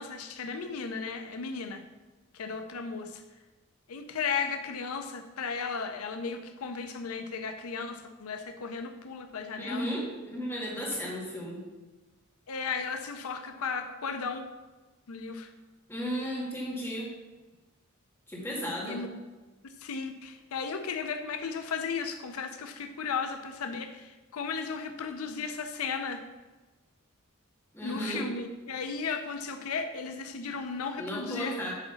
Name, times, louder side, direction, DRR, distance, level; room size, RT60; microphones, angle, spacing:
voice 1, 0.0-1.8 2.3-3.2 3.9-9.9 12.5-14.5 15.1-15.5 18.8-19.2 19.8-26.2 27.8-31.6, left 5 dB, 80° left, 7 dB, 0.6 m, -35 dB
voice 2, 9.6-11.6 15.9-17.1 18.3-19.0 27.7-28.2 31.0-31.7, equal, 10° left, -5 dB, 2.1 m, -34 dB
8.2 x 4.0 x 6.9 m, 1.2 s
head